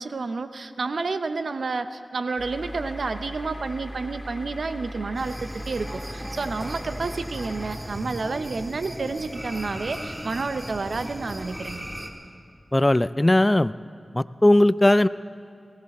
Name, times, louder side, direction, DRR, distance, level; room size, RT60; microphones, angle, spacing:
voice 1, 0.0-11.9, right 3 dB, 85° right, 10 dB, 0.6 m, -30 dB
sound 1, 2.4-7.8, equal, 5° left, 1.8 m, -38 dB
sound 2, 5.1-12.1, equal, 15° right, 1.6 m, -37 dB
voice 2, 12.7-13.7 14.1-15.1, left 1 dB, 25° left, 17 dB, 0.3 m, -18 dB
19.5 x 16.5 x 4.2 m, 2.5 s
cardioid pair, 45°, 0 cm